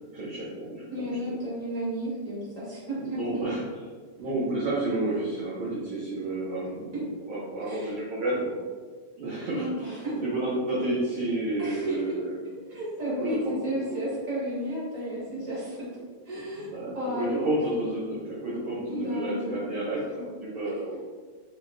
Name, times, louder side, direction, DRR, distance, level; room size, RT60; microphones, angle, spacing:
voice 1, 0.1-1.3 3.0-3.6 4.2-8.6 9.2-12.3 13.2-13.7 15.3-15.4 16.3-21.0, right 2 dB, 80° right, -7 dB, 1.2 m, -31 dB
voice 2, 0.9-3.4 6.9-7.0 7.6-8.0 9.5-10.2 11.6-15.9 16.2-16.7 16.9-17.5 18.8-19.6, equal, 30° right, -9 dB, 0.7 m, -33 dB
5.8 x 2.2 x 2.5 m, 1.5 s
omnidirectional pair, 3.3 m